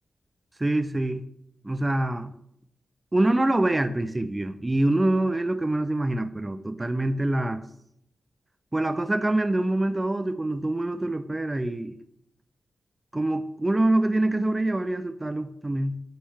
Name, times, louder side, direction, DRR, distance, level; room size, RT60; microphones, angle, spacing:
voice 1, 0.6-1.2 1.6-2.3 3.1-7.6 8.7-12.0 13.1-16.0, right 1 dB, 20° right, 9 dB, 0.3 m, -25 dB
9.7 x 3.3 x 3.3 m, 0.75 s
wide cardioid pair, 90°, 0 cm